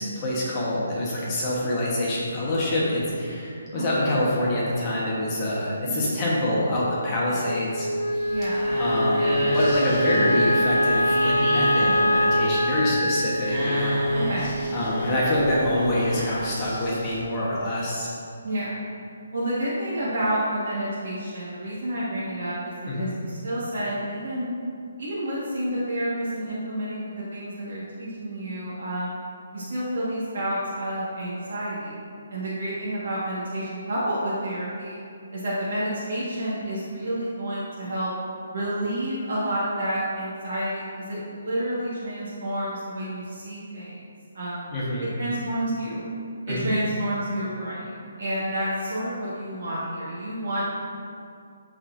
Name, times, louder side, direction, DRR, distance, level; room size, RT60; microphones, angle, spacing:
voice 1, 0.0-8.3 8.8-14.0 14.7-18.1 22.8-23.1 44.7-45.0 46.5-46.7, left 1 dB, 15° left, -7 dB, 1.0 m, -26 dB
voice 2, 3.7-4.1 5.8-6.4 8.3-8.7 11.8-12.1 14.1-14.6 18.4-18.8 19.3-24.5 25.0-29.2 29.5-35.0 35.3-38.1 38.5-44.0 44.3-44.7 45.0-46.1 46.5-47.8 48.2-50.6, right 1 dB, 50° right, -8 dB, 1.4 m, -29 dB
Wind instrument woodwind instrument, 7.4-15.9, left 1 dB, 80° left, 0.8 m, -24 dB
sound 1, 8.1-17.2, equal, 10° right, 1.6 m, -31 dB
12.5 x 4.3 x 2.5 m, 2.5 s
hypercardioid pair, 175°, 0 cm